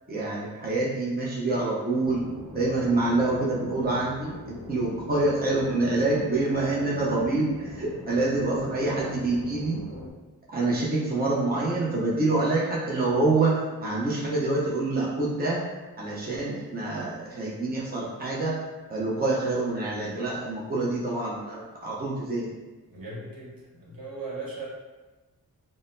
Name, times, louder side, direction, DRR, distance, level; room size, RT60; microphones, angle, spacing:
voice 1, 0.1-2.2 2.5-9.8 10.5-15.6 16.0-18.5 18.9-22.5, right 2 dB, 25° right, -5 dB, 0.8 m, -26 dB
sound 1, 2.0-10.1, left 1 dB, 50° right, 1.3 m, -41 dB
voice 2, 22.9-24.7, right 3 dB, 65° right, -5 dB, 1.2 m, -38 dB
3.7 x 2.1 x 2.6 m, 1.2 s
cardioid pair, 55°, 36 cm